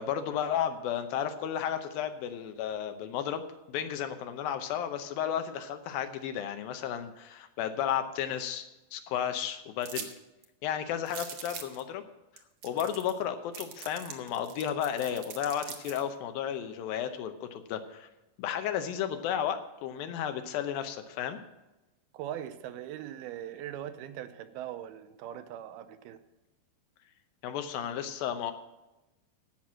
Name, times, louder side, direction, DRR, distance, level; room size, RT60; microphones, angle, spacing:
voice 1, 0.0-8.7 8.9-10.1 10.6-12.0 12.6-18.1 18.4-21.4 27.4-28.5, left 9 dB, 80° left, 8 dB, 2.5 m, -33 dB
sound 1, 9.8-10.1 10.4-10.5 11.1-11.8 12.4-12.5 12.6-13.2 13.5-16.0, right 8 dB, 65° right, 1.9 m, -42 dB
voice 2, 22.1-26.2, right 11 dB, 90° right, 10 dB, 2.7 m, -40 dB
16.5 x 6.0 x 6.2 m, 1.0 s
omnidirectional pair, 4.3 m